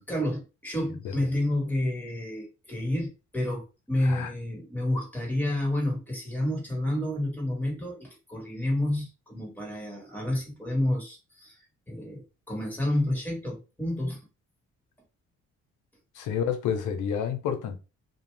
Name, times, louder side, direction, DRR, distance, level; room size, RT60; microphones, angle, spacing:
voice 1, 0.0-14.2, left 1 dB, 5° left, 1.5 m, -30 dB
voice 2, 16.1-17.8, left 8 dB, 85° left, 0.7 m, -29 dB
2.5 x 2.2 x 3.2 m
cardioid pair, 90°, 30 cm